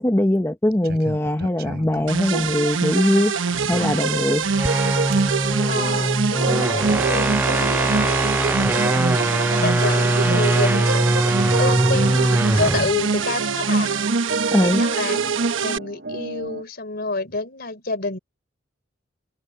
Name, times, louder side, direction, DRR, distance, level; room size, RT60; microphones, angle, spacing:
voice 1, 0.0-3.3 3.7-4.5 14.5-14.8, left 1 dB, 15° left, 0.8 m, -21 dB
sound 1, 0.7-2.5 3.5-4.1 5.1-5.4 5.7-5.9 6.4-16.6, right 2 dB, 60° right, 5.1 m, -34 dB
sound 2, 2.1-15.8, right 5 dB, 90° right, 1.0 m, -24 dB
sound 3, 4.5-13.0, right 1 dB, 10° right, 0.4 m, -21 dB
voice 2, 5.7-8.2 9.6-13.9 14.6-15.2 15.6-18.2, left 3 dB, 55° left, 3.7 m, -28 dB
head